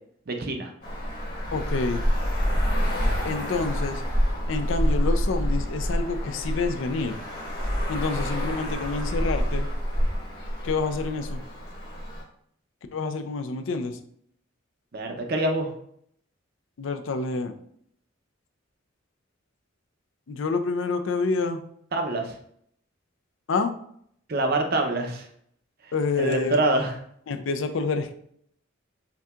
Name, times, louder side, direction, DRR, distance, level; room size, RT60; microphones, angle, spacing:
voice 1, 0.3-0.7 14.9-15.7 21.9-22.4 24.3-25.3 25.8-25.9 26.2-27.0, right 2 dB, 50° right, 4 dB, 0.7 m, -25 dB
Traffic noise roadway noise, 0.8-12.2, equal, 55° left, 1.4 m, -27 dB
voice 2, 1.5-2.0 3.2-4.0 4.5-7.2 7.9-9.7 10.6-11.4 12.9-14.0 16.8-17.5 20.3-21.6 23.5-23.7 25.9-26.6 27.3-28.1, left 4 dB, 70° left, 8 dB, 0.4 m, -28 dB
5.8 x 2.8 x 2.4 m, 0.66 s
head